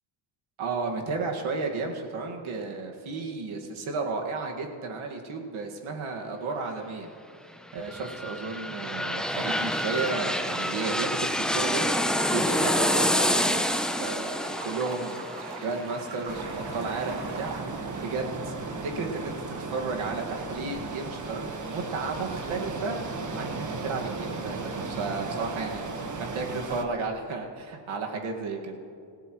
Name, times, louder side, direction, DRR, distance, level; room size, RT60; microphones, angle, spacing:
voice 1, 0.6-7.1 7.7-15.3 15.6-18.5 18.8-23.0 23.3-28.8, right 3 dB, 75° right, 1 dB, 2.0 m, -33 dB
sound 1, 7.6-17.3 17.7-17.8, equal, ahead, 0.6 m, -28 dB
sound 2, 9.3-17.6, right 4 dB, 55° right, 1.8 m, -42 dB
sound 3, 16.3-26.8, right 3 dB, 35° right, 1.5 m, -35 dB
27.0 x 16.5 x 3.1 m, 2.4 s
cardioid pair, 120°, 49 cm